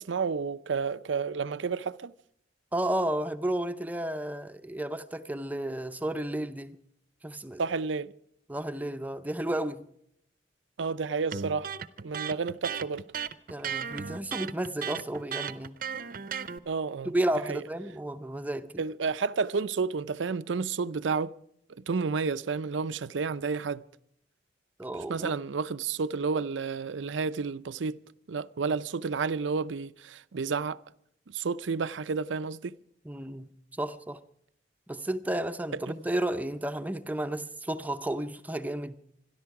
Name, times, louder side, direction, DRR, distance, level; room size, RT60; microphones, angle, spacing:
voice 1, 0.0-2.1 7.6-8.1 10.8-11.7 12.0-13.1 16.7-17.1 17.5-17.6 18.8-21.3 21.7-23.8 25.1-28.0 28.3-30.8 31.3-32.7 35.9-36.0, right 5 dB, 90° right, 0.5 m, -31 dB
voice 2, 2.7-6.8 7.2-7.6 8.5-9.9 13.5-15.8 17.0-18.8 24.8-25.3 33.0-34.2 34.9-39.0, right 1 dB, 10° right, 0.5 m, -32 dB
Electric guitar, 11.3-16.6, right 7 dB, 50° right, 0.6 m, -35 dB
26.0 x 11.0 x 4.8 m
head